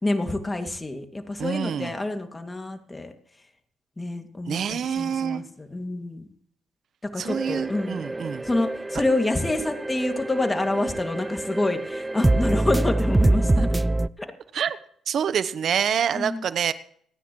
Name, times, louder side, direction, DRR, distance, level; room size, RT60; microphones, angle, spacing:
voice 1, 0.0-3.1 4.0-6.2 7.1-8.0 8.4-13.7 16.1-16.4, left 2 dB, 20° left, 5 dB, 2.4 m, -27 dB
voice 2, 1.4-1.9 4.5-5.4 7.2-8.4 13.6-13.7 14.5-14.8 15.1-16.7, right 8 dB, 60° right, 13 dB, 1.0 m, -26 dB
sound 1, 7.3-14.1, right 2 dB, 15° right, 0.6 m, -25 dB
29.0 x 10.0 x 3.2 m, 0.62 s
supercardioid pair, 70°, 0 cm